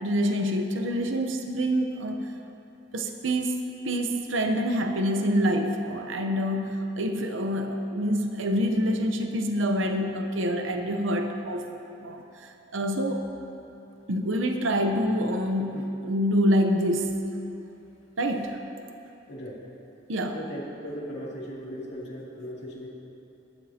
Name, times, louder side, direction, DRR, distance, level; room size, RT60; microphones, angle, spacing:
voice 1, 0.0-2.3 2.9-3.6 3.8-11.7 12.0-13.3 14.1-17.3 18.2-18.6 20.1-20.4, equal, 85° right, 4 dB, 0.8 m, -26 dB
voice 2, 19.3-19.6 20.3-22.9, equal, 60° left, -5 dB, 2.8 m, -37 dB
24.0 x 12.0 x 2.9 m, 2.9 s
head